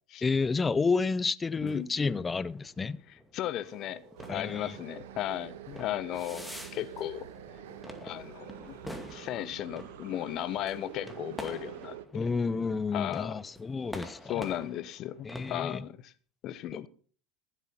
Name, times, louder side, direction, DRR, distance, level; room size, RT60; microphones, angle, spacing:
voice 1, 0.2-3.0 4.3-4.8 12.1-14.4 15.2-15.8 16.7-16.9, left 4 dB, 20° left, 0.6 m, -30 dB
sound 1, 1.4-15.8, equal, ahead, 2.4 m, -48 dB
voice 2, 1.6-1.9 3.1-4.0 4.3-7.3 8.0-8.8 9.1-12.3 12.9-13.4 14.3-16.1 16.4-16.9, left 13 dB, 50° left, 1.0 m, -36 dB
sound 2, 3.6-9.3, right 2 dB, 50° right, 5.8 m, -53 dB
sound 3, 4.2-12.1, right 11 dB, 80° right, 1.0 m, -47 dB
15.0 x 8.1 x 5.8 m
hypercardioid pair, 95°, 0 cm